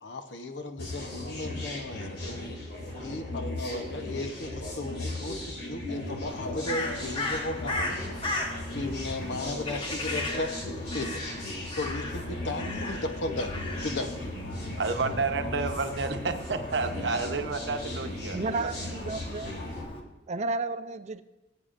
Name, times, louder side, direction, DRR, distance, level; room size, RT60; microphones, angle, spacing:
voice 1, 0.0-2.5 3.0-8.0 8.7-11.2 11.7-13.5 13.8-14.4, left 2 dB, 80° left, 6 dB, 0.9 m, -35 dB
sound 1, 0.8-19.8, left 1 dB, 60° left, 2.5 m, -37 dB
sound 2, 1.4-11.1, equal, 10° right, 3.5 m, -54 dB
Crow, 6.3-20.0, left 2 dB, 30° left, 1.1 m, -38 dB
voice 2, 14.8-18.4, right 4 dB, 70° right, 7 dB, 0.8 m, -30 dB
voice 3, 18.3-19.6 20.3-21.2, right 3 dB, 40° right, 12 dB, 0.4 m, -32 dB
18.5 x 8.4 x 2.5 m, 1.0 s
head